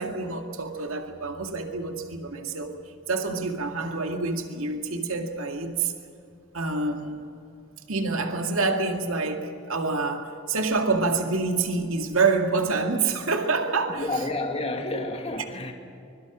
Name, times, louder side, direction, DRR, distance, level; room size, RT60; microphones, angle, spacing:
voice 1, 0.0-2.7 3.1-5.9 6.5-7.3 7.9-14.1, right 3 dB, 75° right, 4 dB, 2.2 m, -27 dB
voice 2, 13.9-15.7, left 2 dB, 30° left, 3 dB, 1.9 m, -30 dB
24.0 x 22.5 x 6.2 m, 2.6 s
head